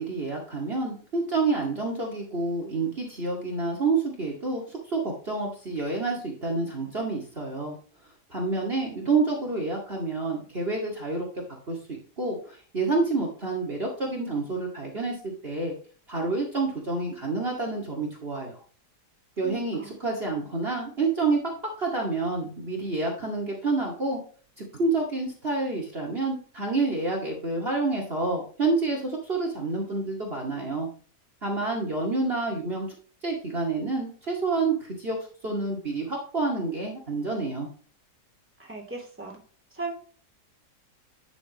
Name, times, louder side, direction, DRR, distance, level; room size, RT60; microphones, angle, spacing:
voice 1, 0.0-7.7 8.3-11.3 11.7-15.7 16.1-18.6 19.4-21.4 21.8-24.2 24.6-30.9 31.4-32.9 33.2-35.2 35.4-37.7, right 3 dB, 35° right, -1 dB, 2.4 m, -28 dB
voice 2, 19.4-19.9 38.6-39.4 39.7-39.9, right 3 dB, 5° right, -2 dB, 2.9 m, -37 dB
11.0 x 7.0 x 3.0 m, 0.41 s
omnidirectional pair, 1.7 m